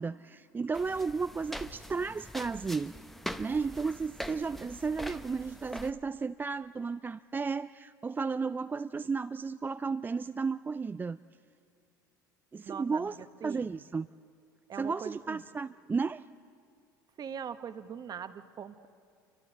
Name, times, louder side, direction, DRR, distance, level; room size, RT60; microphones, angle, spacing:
voice 1, 0.0-3.0 3.4-11.2 12.5-13.1 13.4-14.1 14.8-16.2, right 4 dB, 20° right, 12 dB, 0.4 m, -33 dB
sound 1, 0.7-5.9, equal, ahead, 1.0 m, -43 dB
voice 2, 12.6-13.8 14.7-15.4 17.2-18.9, right 7 dB, 40° right, 11 dB, 1.2 m, -42 dB
28.5 x 24.5 x 4.1 m, 2.4 s
hypercardioid pair, 70°, 10 cm